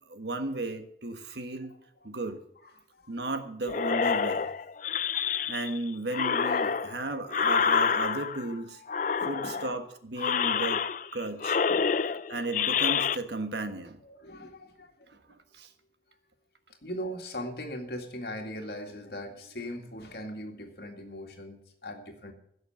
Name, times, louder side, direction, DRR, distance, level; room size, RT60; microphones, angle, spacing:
voice 1, 0.1-1.7 2.0-2.4 3.1-4.5 5.5-8.8 9.2-10.8 11.1-11.7 12.3-14.0 15.1-15.2 15.5-15.7, right 2 dB, 75° right, 8 dB, 1.4 m, -34 dB
voice 2, 2.6-3.1 3.7-3.8 7.6-7.7 9.2-9.6 10.3-10.4 11.7-12.6 14.0-15.1 16.8-22.3, equal, 60° left, 4 dB, 2.2 m, -40 dB
sound 1, 3.7-5.8 6.1-8.5 8.9-9.8 10.2-11.1 11.4-13.2, left 6 dB, 45° left, 0.4 m, -28 dB
16.0 x 6.5 x 7.9 m, 0.68 s
head